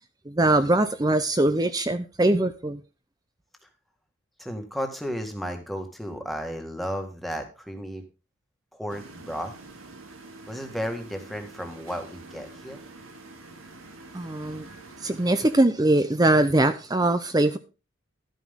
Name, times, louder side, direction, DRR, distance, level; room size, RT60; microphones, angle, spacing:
voice 1, 0.3-2.8 14.1-14.7 15.0-17.6, right 2 dB, 20° right, 0.6 m, -22 dB
voice 2, 4.4-8.0 8.7-9.5 10.5-12.8, equal, ahead, 1.8 m, -33 dB
sound 1, 8.9-15.6, right 2 dB, 90° right, 2.1 m, -46 dB
12.5 x 9.4 x 3.7 m
head